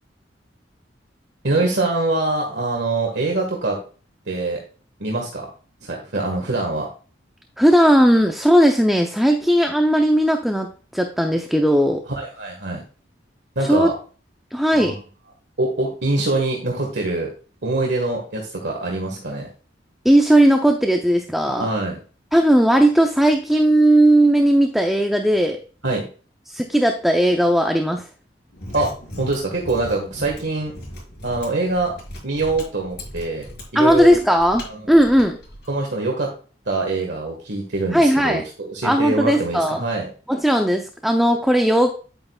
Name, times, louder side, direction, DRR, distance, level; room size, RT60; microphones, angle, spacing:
voice 1, 1.4-3.8 4.3-4.6 5.0-5.5 5.8-6.9 12.1-12.8 13.5-13.9 14.7-15.0 15.6-17.3 17.6-19.5 21.6-22.0 25.8-26.1 28.7-28.9 29.2-30.7 31.2-31.9 32.2-33.5 33.7-34.1 34.6-34.8 35.7-36.3 36.6-40.1, right 2 dB, 65° right, 0 dB, 1.7 m, -24 dB
voice 2, 7.6-12.0 13.7-13.9 14.5-15.0 20.0-21.7 22.3-25.6 26.5-28.1 33.7-34.6 34.9-35.4 37.9-38.4 38.8-39.8 40.3-41.9, right 1 dB, ahead, 3 dB, 0.6 m, -17 dB
Mechanisms, 28.5-35.7, left 1 dB, 55° left, 5.1 m, -38 dB
10.5 x 8.8 x 2.4 m, 0.38 s
head